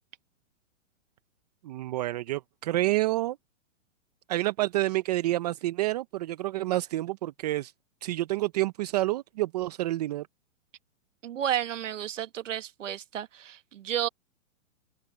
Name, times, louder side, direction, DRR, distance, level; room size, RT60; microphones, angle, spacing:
voice 1, 1.6-3.4 4.3-7.7 8.0-10.3, right 16 dB, 30° right, 0.7 m, -28 dB
voice 2, 11.2-14.1, right 10 dB, 70° right, 1.9 m, -32 dB
open air
hypercardioid pair, 155°, 38 cm